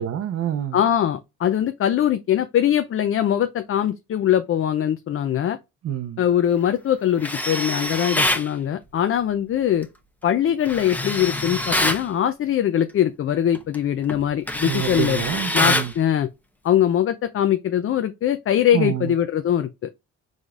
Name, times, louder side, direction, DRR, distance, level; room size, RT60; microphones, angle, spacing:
voice 1, 0.0-0.8 5.8-6.2 14.6-15.9 18.7-19.1, right 10 dB, 60° right, 0.6 m, -27 dB
voice 2, 0.7-5.6 6.2-9.9 10.2-15.2 15.5-16.3 16.6-19.9, left 10 dB, 45° left, 0.5 m, -22 dB
Tools, 7.2-8.5 10.7-12.0 13.5-13.8 14.1-16.0, left 1 dB, 5° left, 0.8 m, -25 dB
4.9 x 4.0 x 2.4 m
cardioid pair, 90°, 30 cm